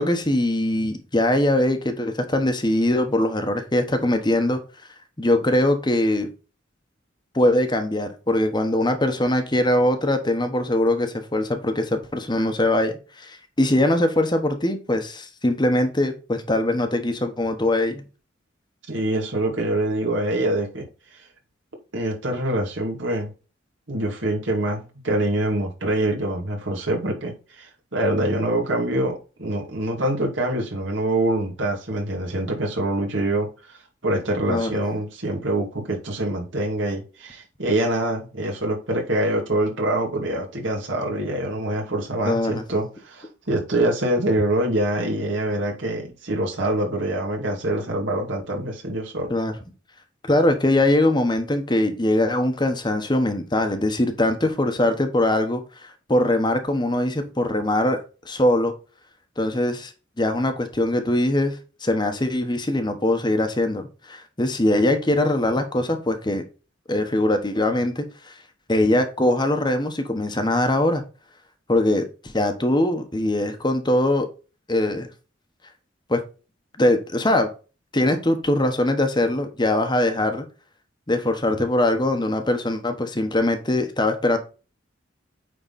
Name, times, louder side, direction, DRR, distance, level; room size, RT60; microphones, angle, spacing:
voice 1, 0.0-4.6 5.2-6.3 7.3-18.0 34.5-34.7 42.2-42.6 49.3-49.5 50.3-58.0 58.2-58.7 59.4-59.9 60.2-66.4 66.9-68.3 68.7-71.0 71.7-74.3 74.7-75.1 76.1-76.2 76.8-77.5 77.9-80.5 81.1-84.4, left 1 dB, 25° left, 6 dB, 1.1 m, -22 dB
voice 2, 18.9-20.8 21.1-21.2 21.9-23.3 23.9-49.3, right 1 dB, 75° right, 0 dB, 2.4 m, -25 dB
9.1 x 3.9 x 4.2 m, 0.34 s
head